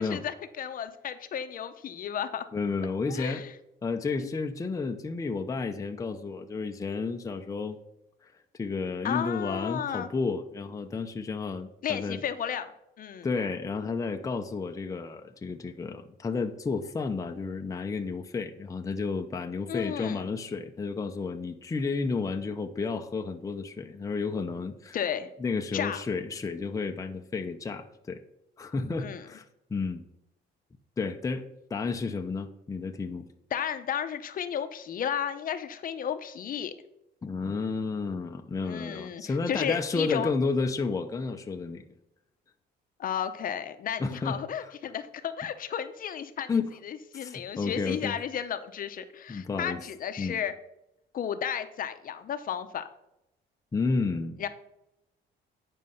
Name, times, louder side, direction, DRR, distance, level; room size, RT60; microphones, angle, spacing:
voice 1, 0.0-2.5 3.1-3.5 9.0-10.1 11.8-12.7 13.0-13.3 19.7-20.3 24.9-25.3 25.7-26.0 29.0-29.2 33.5-36.7 38.7-40.3 43.0-46.5 46.8-50.5 51.1-52.8 54.4-54.5, left 8 dB, 50° left, 10 dB, 0.8 m, -33 dB
voice 2, 2.5-3.4 3.8-7.8 8.2-12.2 13.2-25.0 25.4-28.2 28.6-30.0 31.0-33.3 37.2-41.9 44.0-44.7 46.5-46.7 47.1-48.2 49.3-49.8 50.2-50.4 53.7-54.4, left 4 dB, 20° left, 4 dB, 0.7 m, -32 dB
9.5 x 5.4 x 5.5 m, 0.86 s
cardioid pair, 125°, 19 cm